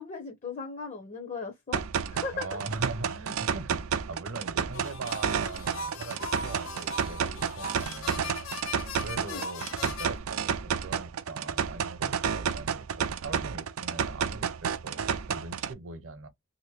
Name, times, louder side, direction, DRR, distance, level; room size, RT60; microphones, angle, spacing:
voice 1, 0.0-1.8 2.1-2.6 9.2-9.4, left 4 dB, 35° left, 0.7 m, -37 dB
sound 1, 1.7-15.7, right 7 dB, 90° right, 0.4 m, -31 dB
voice 2, 2.3-8.7 9.0-16.3, right 3 dB, 65° right, 0.8 m, -41 dB
sound 2, 4.7-10.2, left 3 dB, 75° left, 0.6 m, -39 dB
3.0 x 2.8 x 3.2 m
head